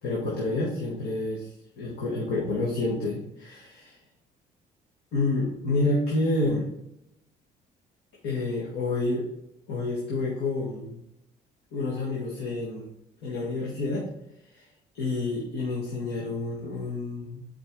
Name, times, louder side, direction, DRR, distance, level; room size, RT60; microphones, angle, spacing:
voice 1, 0.0-4.0 5.1-6.7 8.2-9.3 9.7-11.0 11.7-12.9 13.2-14.1 14.5-14.7 14.9-17.4, left 2 dB, 75° left, -3 dB, 1.8 m, -29 dB
7.4 x 5.0 x 3.8 m, 0.85 s
cardioid pair, 110°, 17 cm